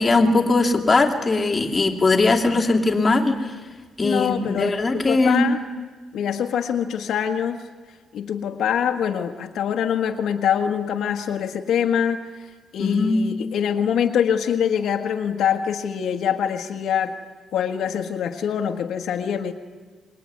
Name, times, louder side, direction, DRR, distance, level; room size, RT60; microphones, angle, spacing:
voice 1, 0.0-3.5 4.0-5.5 12.8-13.2, left 3 dB, 20° left, 0 dB, 2.8 m, -20 dB
voice 2, 4.0-5.6 6.1-7.6 8.1-17.1 17.5-19.5, left 8 dB, 70° left, 5 dB, 1.5 m, -24 dB
26.5 x 21.5 x 9.7 m, 1.4 s
cardioid pair, 125°, 0 cm